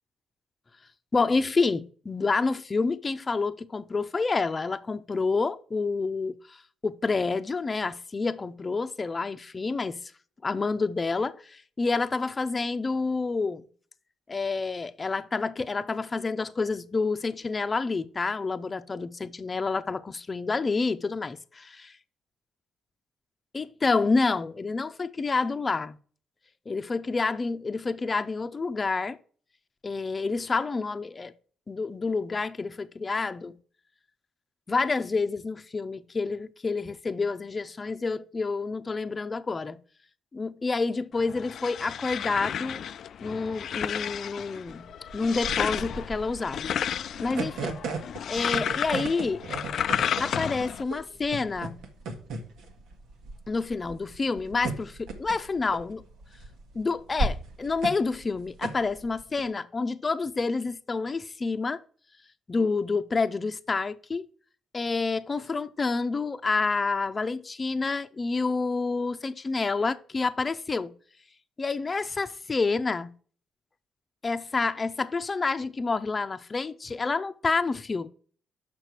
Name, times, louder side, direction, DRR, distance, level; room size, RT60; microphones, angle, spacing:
voice 1, 1.1-6.4 6.8-10.0 10.4-13.6 14.3-21.4 23.5-26.0 26.7-29.2 29.8-31.3 31.7-33.6 34.7-39.8 40.3-42.8 43.2-44.9 45.1-46.7 47.2-47.8 48.3-49.4 50.2-51.8 53.5-56.0 56.7-61.8 62.5-64.2 64.7-70.9 71.6-73.1 74.2-78.1, left 4 dB, 30° left, 0.7 m, -28 dB
sound 1, 41.2-50.8, left 9 dB, 65° left, 0.4 m, -32 dB
sound 2, 44.7-59.4, right 3 dB, 85° right, 1.6 m, -36 dB
6.6 x 6.0 x 4.5 m
cardioid pair, 90°, 0 cm